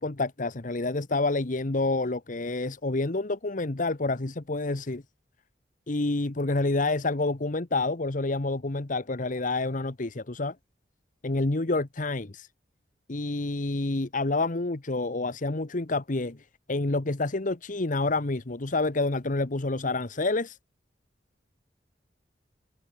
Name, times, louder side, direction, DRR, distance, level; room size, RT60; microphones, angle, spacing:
voice 1, 0.0-5.0 5.9-10.5 11.2-12.5 13.1-20.6, left 2 dB, 45° left, 1.1 m, -28 dB
head